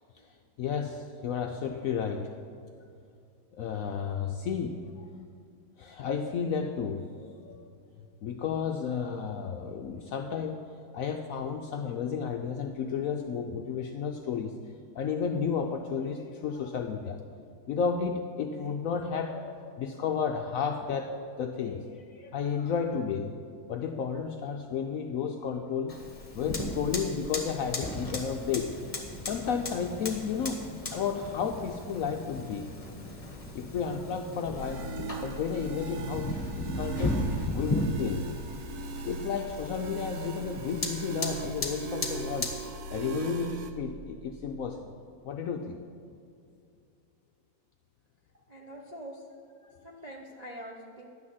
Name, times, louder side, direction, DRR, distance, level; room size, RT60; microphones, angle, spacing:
voice 1, 0.0-0.4 48.3-49.3 49.7-51.1, equal, 45° right, -2 dB, 0.5 m, -45 dB
voice 2, 0.6-2.4 3.5-4.8 5.8-7.7 8.2-14.6 14.9-17.2 17.7-21.1 21.4-23.3 23.7-26.0 26.3-28.7 29.2-32.7 33.5-34.9 35.2-37.2 37.5-38.3 39.0-42.6 42.9-44.9 45.2-45.8, left 6 dB, 75° left, 4 dB, 0.8 m, -32 dB
Fire, 25.9-42.7, left 2 dB, 25° left, 1.0 m, -36 dB
sound 1, 34.6-43.7, right 3 dB, 65° right, 1.1 m, -38 dB
11.0 x 6.3 x 7.4 m, 2.4 s
omnidirectional pair, 1.9 m